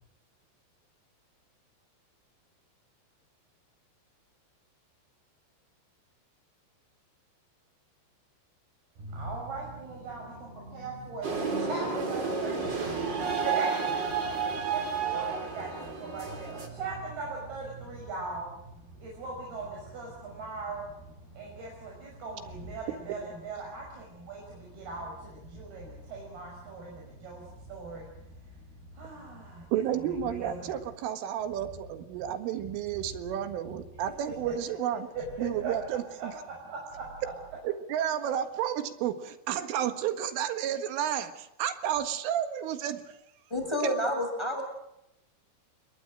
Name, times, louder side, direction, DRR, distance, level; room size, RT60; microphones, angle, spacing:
voice 1, 9.0-30.8 32.6-32.7 34.5-34.6 35.1-35.7 36.2-37.3, right 3 dB, 50° right, -1 dB, 7.5 m, -40 dB
sound 1, 11.2-16.7, right 5 dB, 25° right, 3.3 m, -31 dB
voice 2, 29.7-35.1 35.4-36.3 37.6-43.0, right 10 dB, 75° right, 9 dB, 4.1 m, -31 dB
voice 3, 43.5-44.6, equal, 5° left, 2 dB, 6.7 m, -29 dB
28.5 x 22.5 x 6.4 m, 0.84 s
omnidirectional pair, 5.9 m